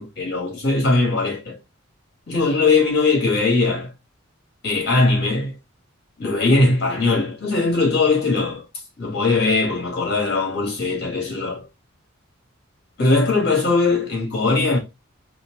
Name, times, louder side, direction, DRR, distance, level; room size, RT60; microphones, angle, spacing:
voice 1, 0.0-1.6 2.3-3.9 4.6-5.5 6.2-8.6 9.0-11.6 13.0-14.8, left 3 dB, 55° left, 2.5 m, -20 dB
4.3 x 2.3 x 4.0 m
head